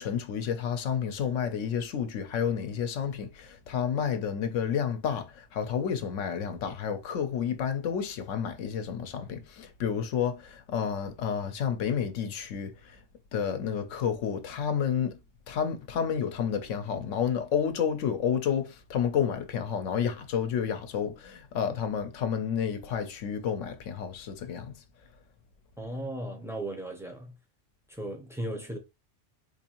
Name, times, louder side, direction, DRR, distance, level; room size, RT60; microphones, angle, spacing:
voice 1, 0.0-13.0 13.3-15.2 15.5-24.7, left 7 dB, 85° left, 1.0 m, -30 dB
voice 2, 25.8-27.3 27.9-28.8, right 1 dB, 5° right, 0.4 m, -36 dB
4.5 x 2.6 x 2.9 m
omnidirectional pair, 1.3 m